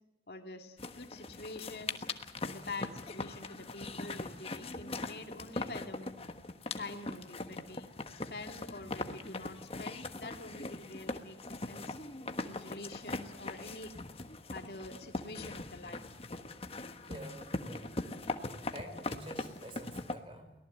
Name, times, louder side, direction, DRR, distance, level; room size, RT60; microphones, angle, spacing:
voice 1, 0.3-2.0 2.4-6.2 6.8-7.9 8.3-11.4 11.7-12.0 12.4-13.9 14.5-16.0, left 2 dB, 60° left, 4 dB, 2.2 m, -46 dB
sound 1, 0.8-20.2, left 2 dB, 35° left, 1.3 m, -41 dB
voice 2, 17.1-18.1 18.7-20.5, equal, 30° right, 6 dB, 4.6 m, -48 dB
24.0 x 18.0 x 8.1 m, 0.96 s
head